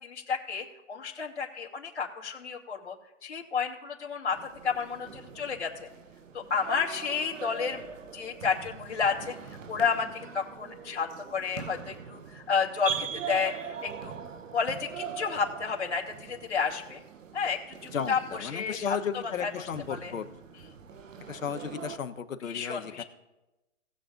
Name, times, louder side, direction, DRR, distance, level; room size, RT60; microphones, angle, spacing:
voice 1, 0.0-2.9 3.2-5.9 6.3-7.8 8.1-14.2 14.5-17.0 17.3-19.0 19.2-20.1 22.4-23.0, left 5 dB, 60° left, -3 dB, 2.6 m, -31 dB
sound 1, 4.3-22.0, right 7 dB, 75° right, 1.0 m, -42 dB
voice 2, 17.9-20.3 21.3-23.0, left 7 dB, 85° left, 8 dB, 1.1 m, -34 dB
20.0 x 7.5 x 2.6 m, 1.0 s
hypercardioid pair, 165°, 38 cm